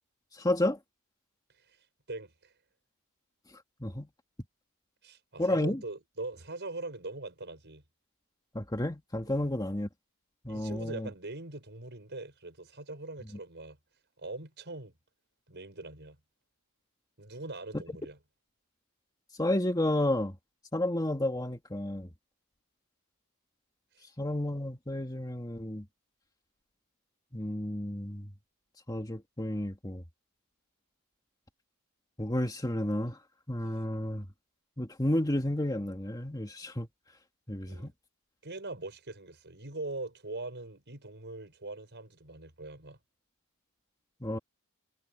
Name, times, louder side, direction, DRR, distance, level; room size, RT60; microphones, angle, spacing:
voice 1, 0.4-0.8 3.8-4.1 5.4-5.8 8.5-9.9 10.4-11.1 19.4-20.4 20.7-22.1 24.2-25.8 27.3-28.3 28.9-30.0 32.2-33.2 33.5-34.2 34.8-36.9 37.5-37.9 44.2-44.4, left 1 dB, 15° left, 2.1 m, -31 dB
voice 2, 1.7-2.5 5.0-7.8 9.3-9.5 10.5-13.8 14.2-15.0 15.5-16.2 17.2-18.2 23.9-24.0 37.7-37.9 38.4-43.0, right 2 dB, 50° right, 6.3 m, -42 dB
head